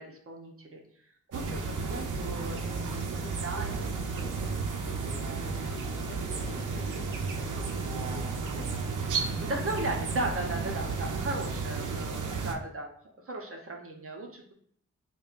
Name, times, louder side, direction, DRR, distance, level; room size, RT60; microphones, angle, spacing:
voice 1, 0.0-3.7 9.4-12.9 13.2-14.5, right 2 dB, 50° right, 1 dB, 0.7 m, -36 dB
sound 1, 1.3-12.5, right 4 dB, 85° right, 0.5 m, -33 dB
voice 2, 3.2-8.9, left 2 dB, 45° left, 0 dB, 0.8 m, -48 dB
5.3 x 2.2 x 2.4 m, 0.63 s
wide cardioid pair, 95°, 30 cm